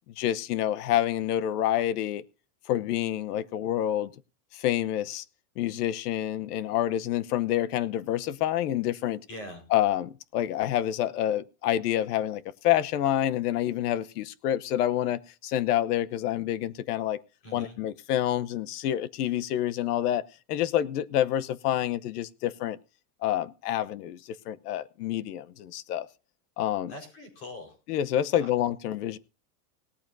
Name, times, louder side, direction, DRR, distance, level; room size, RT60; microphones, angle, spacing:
voice 1, 0.2-2.2 2.7-4.1 4.5-5.2 5.6-9.2 9.7-17.2 17.5-20.2 20.5-22.8 23.2-26.1 26.6-26.9 27.9-29.2, left 12 dB, 75° left, 1.0 m, -28 dB
voice 2, 9.3-9.6 17.4-17.8 26.9-27.8 28.4-28.5, left 1 dB, 30° left, 4.6 m, -42 dB
18.5 x 13.5 x 2.7 m
supercardioid pair, 175°, 46 cm